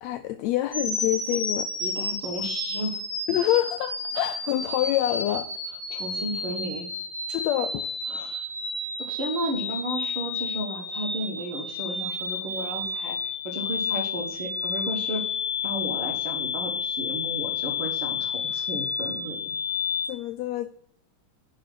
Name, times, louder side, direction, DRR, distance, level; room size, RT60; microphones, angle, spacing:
voice 1, 0.0-1.7 3.3-5.6 7.3-7.9 20.1-20.7, left 14 dB, 85° left, 9 dB, 1.5 m, -26 dB
sound 1, 0.7-20.1, left 4 dB, 20° left, 2.0 m, -31 dB
voice 2, 1.8-3.0 5.9-6.9 8.1-8.5 9.1-13.2 13.4-15.2 15.6-19.5, equal, 50° right, 1 dB, 2.0 m, -33 dB
10.5 x 4.8 x 5.9 m, 0.65 s
omnidirectional pair, 3.6 m